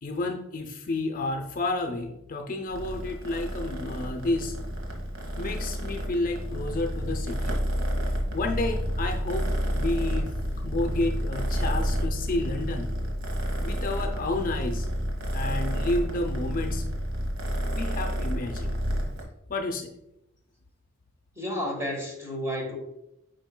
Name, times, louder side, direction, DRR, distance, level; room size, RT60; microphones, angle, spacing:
voice 1, 0.0-4.6 5.4-7.5 8.3-12.9 13.6-14.9 15.3-16.8 17.7-18.8 19.5-19.9, left 2 dB, 45° left, 5 dB, 0.5 m, -31 dB
Purr, 2.7-19.2, equal, 85° right, 1.3 m, -30 dB
voice 2, 21.3-22.8, equal, 15° right, 0 dB, 1.4 m, -31 dB
9.1 x 5.1 x 2.2 m, 0.86 s
head